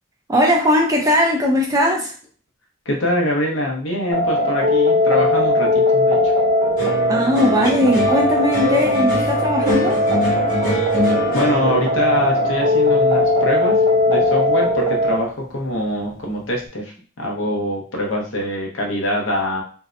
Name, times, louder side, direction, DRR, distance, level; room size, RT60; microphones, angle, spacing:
voice 1, 0.3-2.1 7.1-10.0, left 1 dB, 15° right, 0.4 m, -18 dB
voice 2, 2.9-6.3 11.3-19.6, left 1 dB, 65° left, 0.7 m, -24 dB
sound 1, 4.1-15.2, left 1 dB, 80° right, 0.6 m, -19 dB
sound 2, 6.8-15.2 15.5-16.2, left 1 dB, 40° left, 1.3 m, -26 dB
2.7 x 2.1 x 2.4 m
head